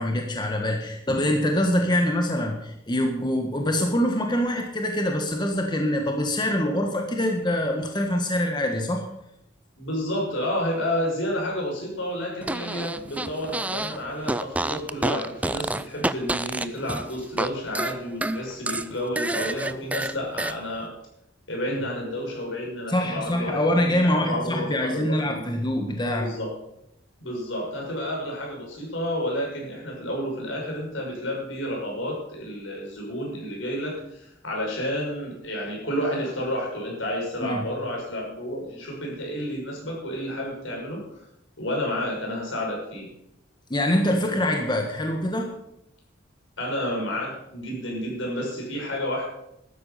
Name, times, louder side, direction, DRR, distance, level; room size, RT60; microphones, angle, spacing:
voice 1, 0.0-9.0 21.7-21.8 22.9-26.3 37.4-37.7 43.7-45.5, left 1 dB, 25° left, 2 dB, 1.5 m, -24 dB
voice 2, 9.8-20.9 21.5-25.4 26.1-26.5 27.2-41.2 41.6-43.1 46.6-49.3, equal, 80° left, -1 dB, 6.1 m, -30 dB
Fart, 12.4-14.0 14.2-17.5 17.7-20.5, right 2 dB, 5° right, 0.4 m, -28 dB
12.5 x 9.7 x 6.9 m, 0.80 s
head